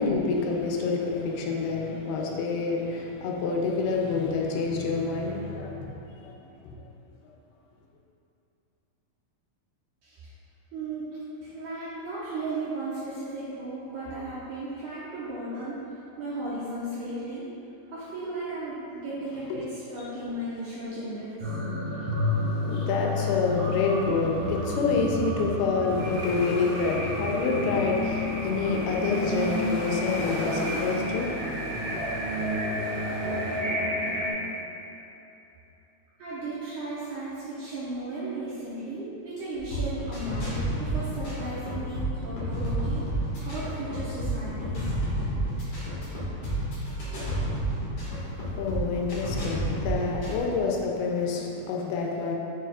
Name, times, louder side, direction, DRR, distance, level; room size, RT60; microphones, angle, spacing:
voice 1, 0.0-6.3 6.6-6.8 19.5-19.6 20.0-20.1 22.0-22.3 22.6-32.0 48.6-52.4, left 4 dB, 85° left, 0 dB, 2.6 m, -28 dB
voice 2, 10.7-11.1 11.4-15.8 16.2-17.5 17.9-21.3 36.2-43.1 43.4-45.0, right 2 dB, 75° right, -9 dB, 1.9 m, -35 dB
sound 1, 21.4-34.3, left 1 dB, 60° right, 2.6 m, -30 dB
sound 2, 25.8-33.6, left 1 dB, 65° left, 2.2 m, -38 dB
sound 3, 39.6-50.4, right 1 dB, 50° left, 1.8 m, -30 dB
6.8 x 5.8 x 2.4 m, 2.9 s
omnidirectional pair, 4.5 m